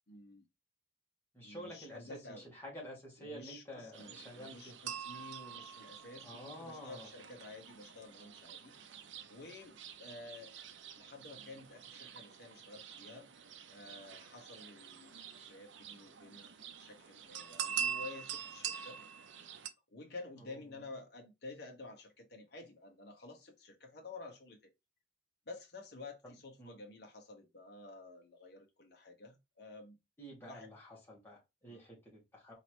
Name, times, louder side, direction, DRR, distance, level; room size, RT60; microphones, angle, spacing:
voice 1, 0.1-0.4 1.4-2.4 3.2-8.7 9.3-10.5 11.0-13.3 13.7-19.0 19.9-24.6 25.5-30.0 30.4-30.7 31.7-31.8, left 3 dB, 55° left, 1.1 m, -51 dB
voice 2, 1.3-4.7 6.2-7.1 20.4-20.6 26.2-26.8 30.2-32.5, equal, 10° left, 1.7 m, -50 dB
sound 1, 3.9-19.7, right 8 dB, 75° right, 0.5 m, -45 dB
4.3 x 2.9 x 2.9 m
head